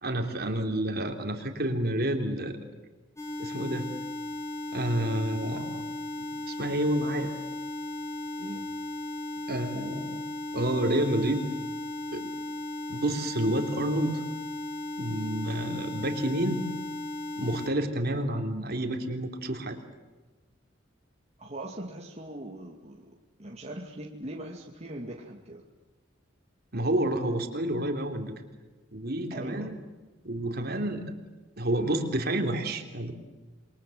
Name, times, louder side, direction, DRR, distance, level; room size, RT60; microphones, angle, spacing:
voice 1, 0.0-2.6 3.4-3.9 4.7-5.8 6.2-7.3 9.5-10.2 10.5-11.5 12.1-12.3 12.9-14.2 15.0-16.6 17.4-19.8 26.7-28.4 28.9-29.8 30.2-31.1 31.6-33.1, right 1 dB, 55° right, 4 dB, 3.4 m, -29 dB
sound 1, 3.2-17.7, left 2 dB, 15° left, 5.1 m, -36 dB
voice 2, 8.4-8.7 21.4-25.6 29.3-29.7, right 1 dB, 35° right, 0 dB, 2.3 m, -41 dB
27.5 x 23.0 x 8.0 m, 1.2 s
head